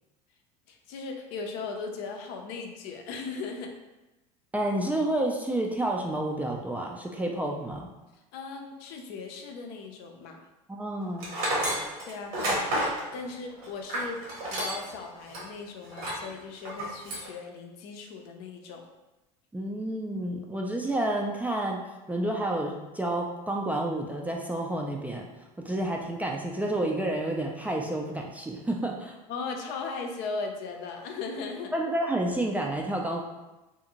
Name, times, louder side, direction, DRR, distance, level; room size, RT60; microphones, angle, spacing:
voice 1, 0.7-3.7 8.3-10.5 12.0-12.7 13.1-14.2 14.5-18.8 29.3-31.7, left 4 dB, 60° left, 3 dB, 0.5 m, -38 dB
voice 2, 4.5-7.9 10.7-11.3 19.5-25.3 25.6-29.2 31.7-33.2, right 1 dB, 10° right, 0 dB, 0.3 m, -30 dB
Tools, 11.2-15.0 15.3-15.4 15.9-16.3 16.7-17.3, right 1 dB, 80° right, 1.0 m, -30 dB
2.6 x 2.4 x 2.9 m, 1.0 s
hypercardioid pair, 95°, 19 cm